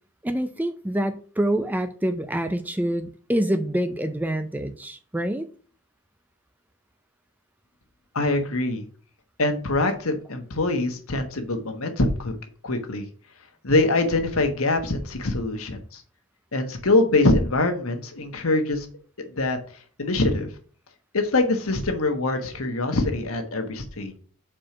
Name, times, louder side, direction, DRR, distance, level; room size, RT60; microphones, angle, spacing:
voice 1, 0.2-5.5, right 1 dB, 10° right, 9 dB, 0.4 m, -26 dB
voice 2, 8.1-8.8 9.4-12.3 12.6-13.1 13.6-16.0 16.5-18.9 19.4-19.6 20.0-20.5 21.1-24.2, left 2 dB, 80° left, 5 dB, 1.3 m, -24 dB
5.0 x 4.4 x 5.9 m, 0.42 s
head